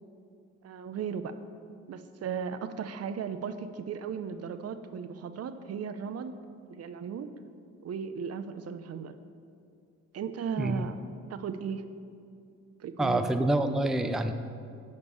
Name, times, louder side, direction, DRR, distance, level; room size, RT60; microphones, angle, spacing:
voice 1, 0.6-1.4 1.9-6.3 6.7-7.3 7.8-9.1 10.1-11.0 11.3-11.9 12.8-13.3, right 7 dB, 55° right, 10 dB, 0.7 m, -36 dB
voice 2, 13.0-14.3, right 1 dB, ahead, 7 dB, 0.5 m, -27 dB
10.5 x 5.3 x 6.9 m, 2.4 s
cardioid pair, 90°, 30 cm